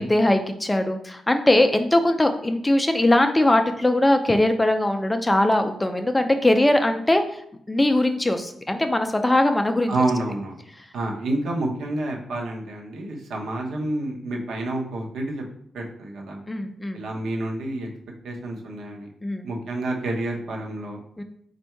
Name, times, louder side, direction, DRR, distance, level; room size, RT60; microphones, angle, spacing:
voice 1, 0.0-7.2 7.7-9.9 16.5-17.0 19.2-19.5 21.2-21.3, left 1 dB, 10° left, 6 dB, 0.3 m, -20 dB
voice 2, 9.9-10.6 10.9-15.4 15.7-16.4 16.9-17.9 18.2-19.1 19.4-21.0, right 2 dB, 70° right, 0 dB, 0.9 m, -28 dB
4.5 x 2.6 x 4.4 m, 0.69 s
wide cardioid pair, 160°, 0 cm